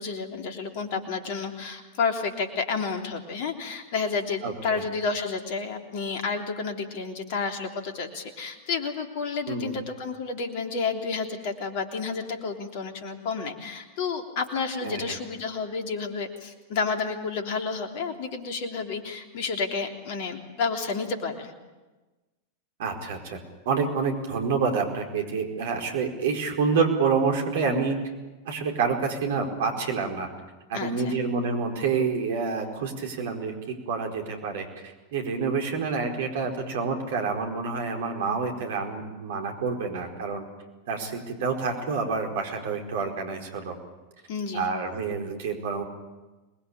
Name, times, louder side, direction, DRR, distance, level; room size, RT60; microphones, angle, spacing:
voice 1, 0.0-21.5 30.7-31.2 44.3-44.7, left 5 dB, 50° left, 4 dB, 3.3 m, -30 dB
voice 2, 4.4-4.8 9.5-9.7 14.8-15.2 22.8-23.4 23.6-28.0 28.4-30.3 30.7-33.5 33.9-40.4 40.9-43.7 44.5-45.8, right 5 dB, 55° right, 2 dB, 4.7 m, -28 dB
26.0 x 20.5 x 8.8 m, 1.2 s
figure-of-eight pair, 90°, 0 cm